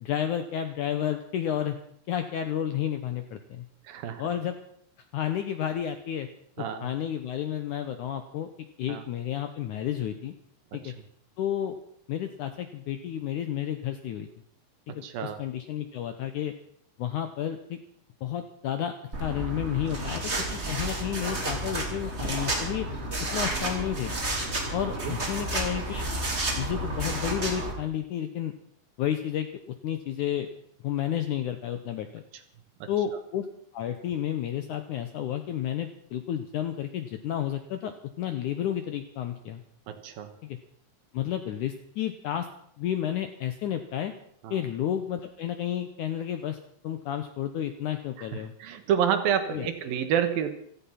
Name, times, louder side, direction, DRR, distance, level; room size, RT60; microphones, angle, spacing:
voice 1, 0.0-1.8 2.1-3.7 4.2-4.6 5.1-6.3 6.6-8.5 8.8-10.3 10.7-10.9 11.4-11.8 12.1-14.3 15.0-16.5 17.0-17.8 18.2-20.3 20.7-22.9 23.3-24.1 24.7-26.1 26.6-28.5 29.0-30.5 30.8-32.2 32.9-33.5 33.7-39.6 40.4-40.6 41.1-42.5 42.8-44.1 44.5-46.6 46.8-48.5 49.5-49.7, left 10 dB, 75° left, 8 dB, 1.9 m, -31 dB
voice 2, 3.9-4.2 6.6-6.9 8.9-9.0 10.8-10.9 14.9-15.4 25.0-25.1 32.8-32.9 39.9-40.3 44.4-44.6 48.2-48.3 48.6-50.5, right 8 dB, 70° right, 8 dB, 2.9 m, -28 dB
sound 1, 19.1-27.7, right 1 dB, 20° right, 2.8 m, -31 dB
16.0 x 14.0 x 5.8 m, 0.66 s
omnidirectional pair, 4.6 m